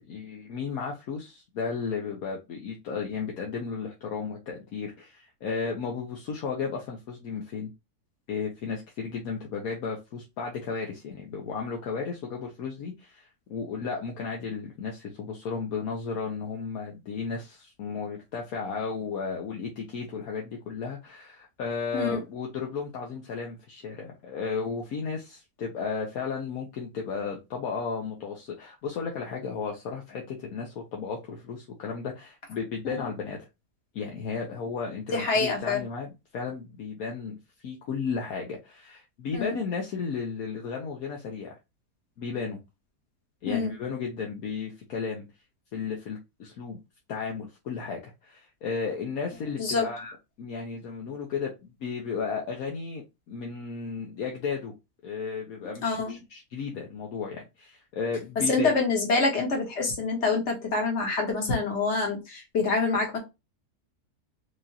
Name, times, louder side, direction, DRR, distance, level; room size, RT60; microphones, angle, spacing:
voice 1, 0.1-7.7 8.3-33.5 33.9-37.4 37.6-41.6 42.2-42.6 43.4-45.2 45.7-46.8 47.1-54.7 55.0-58.7, left 5 dB, 70° left, 1.2 m, -34 dB
voice 2, 35.1-35.8 39.3-39.5 43.5-43.7 49.6-49.9 55.8-56.2 58.5-63.2, left 3 dB, 45° left, 1.6 m, -26 dB
4.8 x 2.5 x 2.8 m
omnidirectional pair, 1.7 m